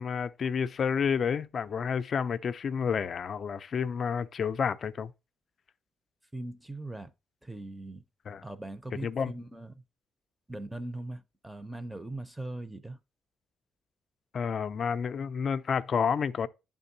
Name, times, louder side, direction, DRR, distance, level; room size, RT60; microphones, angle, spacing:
voice 1, 0.0-5.1 8.3-8.4 9.0-9.3 14.3-16.5, left 6 dB, 50° left, 0.4 m, -30 dB
voice 2, 6.3-7.1 7.4-8.0 8.4-9.8 10.5-13.0, right 2 dB, 10° right, 0.5 m, -40 dB
10.5 x 3.6 x 2.6 m
cardioid pair, 90°, 0 cm